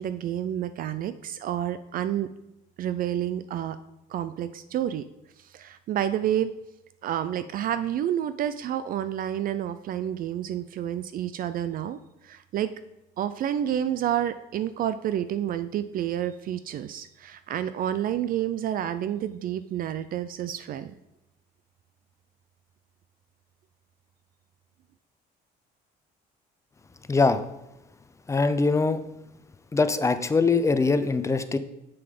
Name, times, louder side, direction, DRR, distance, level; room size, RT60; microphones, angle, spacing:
voice 1, 0.0-2.3 2.8-3.8 4.1-5.0 5.5-6.5 7.0-12.7 13.2-21.0, right 10 dB, 55° right, 12 dB, 0.4 m, -29 dB
voice 2, 27.1-27.4 28.3-29.0 29.7-31.6, left 4 dB, 15° left, 11 dB, 0.6 m, -22 dB
7.0 x 6.7 x 5.3 m, 0.94 s
cardioid pair, 110°, 17 cm